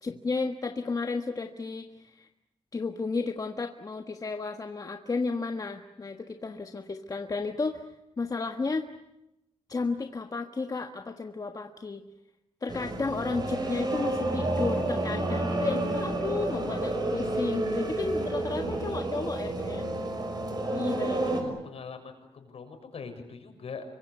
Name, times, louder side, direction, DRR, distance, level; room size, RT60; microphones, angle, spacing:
voice 1, 0.0-2.3 2.7-7.9 8.2-8.9 9.7-12.0 12.6-19.9 20.7-21.3, left 4 dB, 35° left, 5 dB, 1.5 m, -33 dB
sound 1, 12.7-21.4, right 2 dB, 40° right, 6.2 m, -30 dB
voice 2, 19.4-19.9 21.3-23.8, left 5 dB, 65° left, 5 dB, 6.6 m, -43 dB
27.0 x 24.0 x 8.3 m, 0.88 s
wide cardioid pair, 115°, 11 cm